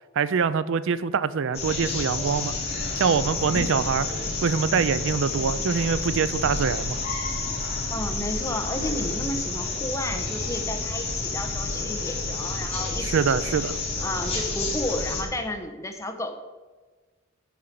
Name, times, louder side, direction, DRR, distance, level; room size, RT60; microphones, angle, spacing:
voice 1, 0.2-2.5 3.0-4.1 4.4-7.0 13.0-13.8, right 6 dB, 65° right, 16 dB, 0.4 m, -24 dB
sound 1, 1.5-15.2, left 3 dB, 30° left, 2.8 m, -30 dB
voice 2, 7.9-13.6 14.0-16.4, left 1 dB, 15° left, 5 dB, 1.0 m, -32 dB
8.6 x 5.6 x 7.5 m, 1.3 s
head